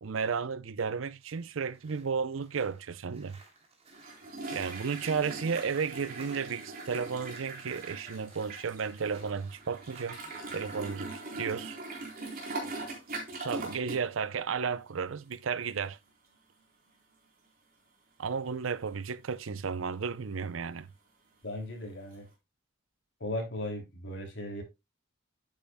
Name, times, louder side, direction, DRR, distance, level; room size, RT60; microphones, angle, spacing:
voice 1, 0.0-3.4 4.5-10.2 10.5-11.8 13.4-16.0 18.2-20.9, right 6 dB, 75° right, 0.6 m, -33 dB
sound 1, 1.2-11.3, right 3 dB, 30° right, 2.9 m, -56 dB
sound 2, 3.9-14.1 14.3-14.6 15.3-15.4 15.8-15.9 22.1-22.2, right 2 dB, 50° right, 3.8 m, -41 dB
voice 2, 21.4-22.3 23.2-24.6, left 1 dB, 65° left, 3.0 m, -37 dB
10.5 x 8.8 x 2.2 m
head